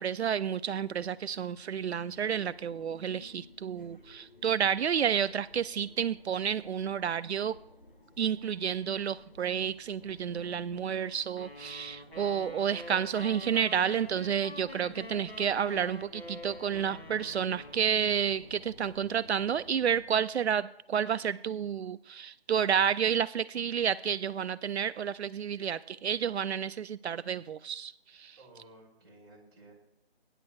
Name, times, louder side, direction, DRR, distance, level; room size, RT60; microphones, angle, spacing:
voice 1, 0.0-7.6 8.2-28.4, right 8 dB, 80° right, 14 dB, 0.5 m, -30 dB
sound 1, 0.9-20.1, left 2 dB, 50° left, 2.3 m, -56 dB
sound 2, 11.4-18.5, left 2 dB, 75° left, 2.3 m, -46 dB
voice 2, 28.4-29.7, right 2 dB, 20° right, -6 dB, 3.0 m, -55 dB
23.5 x 10.0 x 2.4 m, 0.79 s
figure-of-eight pair, 175°, 32 cm